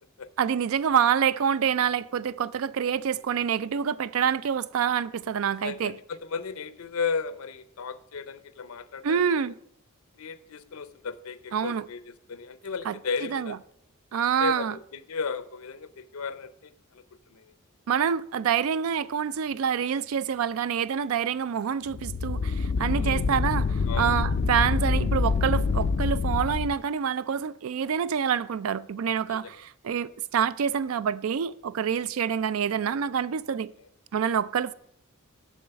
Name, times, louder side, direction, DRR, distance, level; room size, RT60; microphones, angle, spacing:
voice 1, 0.4-5.9 9.0-9.5 11.5-11.9 12.9-13.0 13.3-13.6 14.1-14.7 17.9-33.7 34.1-34.7, right 7 dB, 70° right, 0.4 m, -27 dB
voice 2, 5.5-9.5 10.2-13.6 14.4-17.5 23.0-23.3 23.9-24.2 29.3-29.5 31.9-32.0 33.8-33.9, left 5 dB, 85° left, 0.6 m, -35 dB
sound 1, 21.9-26.7, left 4 dB, 50° left, 0.3 m, -26 dB
7.1 x 6.3 x 6.9 m
head